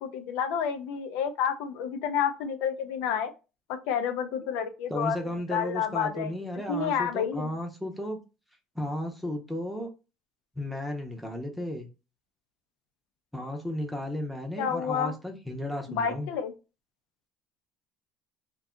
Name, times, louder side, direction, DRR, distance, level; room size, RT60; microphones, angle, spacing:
voice 1, 0.0-3.3 3.9-5.2 5.5-6.3 6.7-7.5 14.6-15.1 15.9-16.5, left 7 dB, 90° left, 0.5 m, -29 dB
voice 2, 4.9-8.2 8.7-9.9 10.6-11.9 13.3-16.3, left 1 dB, ahead, 0.6 m, -34 dB
2.6 x 2.2 x 3.7 m
cardioid pair, 145°, 2 cm